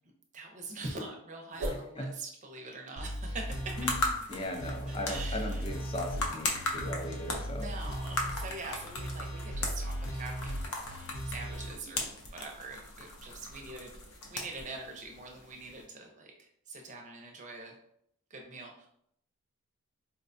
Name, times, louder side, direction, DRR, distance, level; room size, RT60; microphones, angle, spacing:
voice 1, 0.3-3.7 4.9-5.7 7.0-7.1 7.5-17.7 18.3-18.9, right 3 dB, 35° right, 1 dB, 0.6 m, -44 dB
sound 1, 1.5-1.9 6.0-9.5 10.5-13.8, right 1 dB, 80° right, 0.6 m, -46 dB
voice 2, 1.7-2.1 3.8-3.9 4.3-7.7, left 1 dB, 25° left, 3 dB, 0.4 m, -38 dB
sound 2, 3.0-11.7, equal, 90° left, 1.0 m, -37 dB
sound 3, 3.4-15.8, left 2 dB, 70° left, 0.6 m, -39 dB
4.2 x 2.2 x 2.6 m, 0.71 s
head